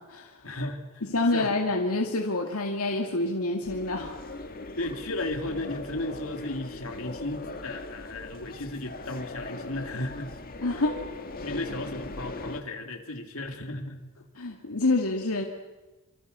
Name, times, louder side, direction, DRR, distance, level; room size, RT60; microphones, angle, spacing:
voice 1, 0.4-1.0 1.3-1.5 4.8-10.3 11.4-14.1, left 2 dB, 70° left, 4 dB, 3.1 m, -35 dB
voice 2, 1.0-4.2 10.6-11.0 11.5-11.6 14.4-15.5, left 2 dB, 85° left, 2 dB, 2.2 m, -27 dB
sound 1, 3.6-12.6, left 2 dB, 45° left, 2.0 m, -40 dB
27.5 x 26.5 x 6.9 m, 1.1 s
head